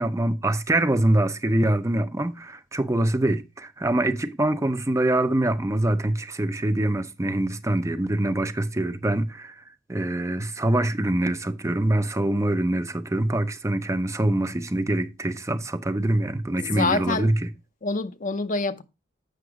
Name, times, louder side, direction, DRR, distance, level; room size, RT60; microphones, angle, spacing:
voice 1, 0.0-9.6 9.9-17.5, right 1 dB, 15° right, 0.6 m, -24 dB
voice 2, 16.6-17.3 17.8-18.8, left 3 dB, 45° left, 0.7 m, -26 dB
7.9 x 5.9 x 4.7 m
head